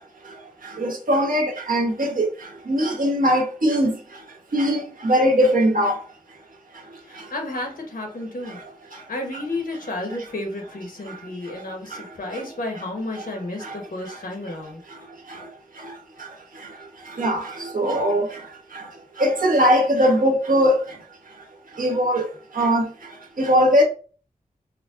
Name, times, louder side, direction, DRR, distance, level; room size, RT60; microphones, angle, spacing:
voice 1, 0.8-2.3 2.7-3.9 4.5-5.9 17.2-17.4 17.7-18.2 19.2-20.8 21.8-22.2 22.6-22.8 23.4-23.8, equal, 70° right, 1.1 m, -19 dB
voice 2, 7.0-8.6 9.1-14.8, left 2 dB, 75° left, 1.1 m, -32 dB
5.0 x 2.3 x 2.4 m
wide cardioid pair, 105°, 15 cm